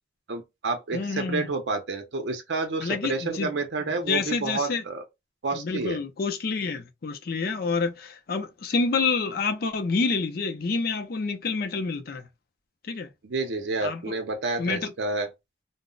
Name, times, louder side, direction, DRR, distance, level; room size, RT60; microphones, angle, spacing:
voice 1, 0.3-5.0 5.4-6.0 13.2-15.3, right 3 dB, 75° right, 0.6 m, -29 dB
voice 2, 0.9-1.5 2.8-3.5 3.9-4.8 5.5-12.3 12.8-13.1 13.8-14.0 14.6-14.9, left 4 dB, 55° left, 0.4 m, -28 dB
2.0 x 2.0 x 3.7 m
head